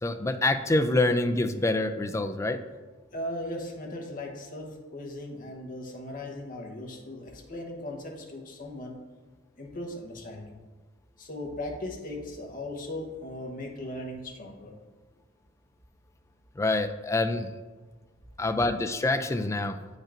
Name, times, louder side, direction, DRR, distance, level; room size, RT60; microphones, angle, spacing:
voice 1, 0.0-2.6 16.6-17.5 18.4-19.8, left 2 dB, 15° left, 7 dB, 0.3 m, -26 dB
voice 2, 3.1-9.0 9.6-10.6 11.2-14.8, left 1 dB, 45° left, 0 dB, 1.0 m, -38 dB
8.5 x 5.2 x 2.5 m, 1.3 s
head